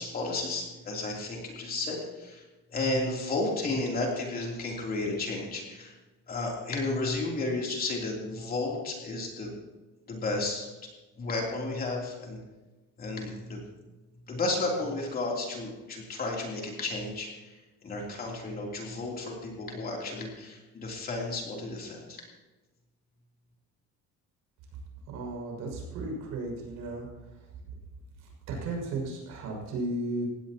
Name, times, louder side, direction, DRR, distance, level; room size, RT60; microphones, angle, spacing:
voice 1, 0.0-2.4 2.7-5.9 6.3-9.5 10.1-10.7 11.2-12.4 13.0-13.6 14.3-22.2, left 2 dB, 30° left, -1 dB, 3.3 m, -33 dB
voice 2, 25.1-27.0 28.5-30.3, right 2 dB, 75° right, 0 dB, 6.4 m, -34 dB
19.5 x 16.0 x 3.0 m, 1.1 s
cardioid pair, 165°, 30 cm